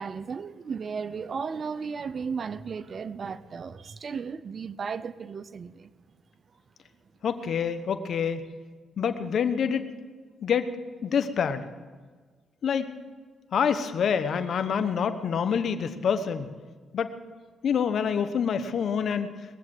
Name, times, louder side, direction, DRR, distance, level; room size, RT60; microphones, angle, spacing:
voice 1, 0.0-5.9, right 5 dB, 50° right, 15 dB, 0.6 m, -35 dB
voice 2, 7.2-8.5 9.0-9.8 10.4-10.7 11.0-11.6 12.6-12.9 13.5-16.5 16.9-17.1 17.6-19.3, left 7 dB, 65° left, 10 dB, 1.1 m, -26 dB
20.5 x 7.5 x 7.7 m, 1.5 s
cardioid pair, 70°, 0 cm